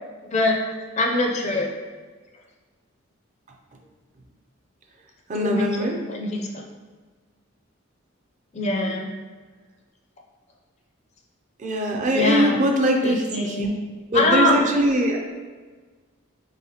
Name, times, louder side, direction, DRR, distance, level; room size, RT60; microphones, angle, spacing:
voice 1, 1.0-1.7 5.4-5.7 6.1-6.6 8.5-9.1 12.1-12.6 13.0-13.7 14.1-14.6, left 2 dB, 30° left, 1 dB, 0.4 m, -23 dB
voice 2, 5.3-6.0 11.6-13.7 14.1-15.2, equal, 35° right, 1 dB, 0.4 m, -22 dB
3.9 x 3.4 x 2.8 m, 1.4 s
head